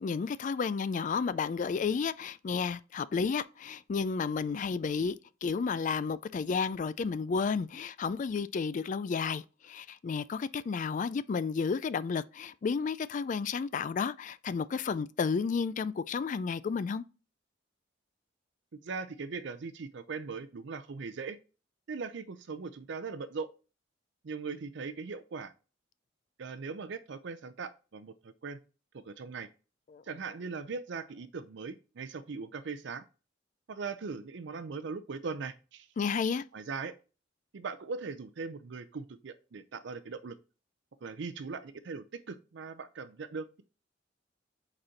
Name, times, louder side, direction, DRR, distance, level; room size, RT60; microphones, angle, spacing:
voice 1, 0.0-5.2 5.4-17.0 29.9-30.0 36.0-36.4, left 5 dB, 40° left, 0.3 m, -32 dB
voice 2, 18.7-21.4 21.9-23.5 24.2-25.5 26.4-28.6 29.1-29.5 30.0-33.0 33.7-35.9 36.5-36.9 37.5-40.3 41.0-43.6, right 4 dB, 65° right, 0.5 m, -40 dB
5.2 x 4.2 x 5.7 m
head